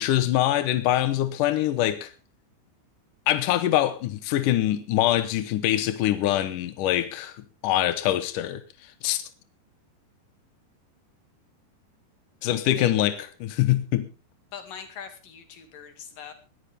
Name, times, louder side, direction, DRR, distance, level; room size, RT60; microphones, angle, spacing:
voice 1, 0.0-2.1 3.3-9.2 12.4-14.1, left 13 dB, 75° left, 1.9 m, -24 dB
voice 2, 14.5-16.3, left 7 dB, 55° left, 3.5 m, -41 dB
20.0 x 14.0 x 3.5 m
omnidirectional pair, 5.1 m